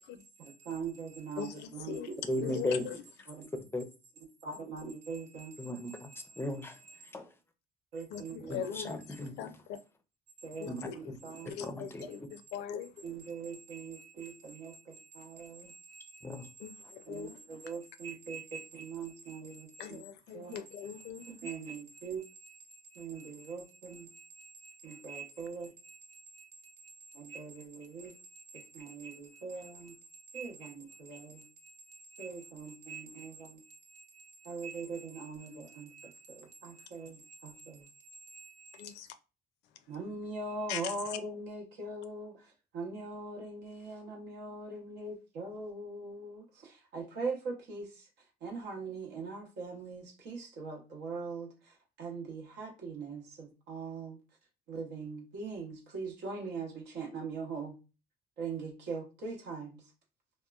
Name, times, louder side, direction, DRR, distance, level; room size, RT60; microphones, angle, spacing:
voice 1, 0.1-2.0 2.4-2.5 3.3-3.4 4.4-5.5 6.1-6.2 7.9-8.6 10.4-11.5 13.0-16.5 17.1-20.0 20.3-20.6 21.2-22.5 22.9-26.0 26.3-26.5 27.1-29.9 30.3-31.5 31.9-33.6 33.9-37.9 38.3-38.8 39.9-42.3 42.7-47.9 48.4-51.5 52.0-54.2 54.7-57.8 58.4-59.8, right 4 dB, 80° right, 0.9 m, -42 dB
voice 2, 1.4-2.1 2.4-3.0 8.1-9.0 9.4-9.5 10.6-11.0 11.5-12.9 16.6-16.7 17.1-17.4 19.8-21.2 38.8-39.1 40.7-40.9, left 9 dB, 80° left, 0.4 m, -40 dB
voice 3, 2.3-2.9 3.7-3.8 5.6-6.1 6.4-6.7 7.1-7.3 8.5-9.3 10.7-10.9 11.6-12.0 16.2-16.4, left 1 dB, 15° left, 0.4 m, -35 dB
2.9 x 2.1 x 2.3 m
cardioid pair, 110°, 17 cm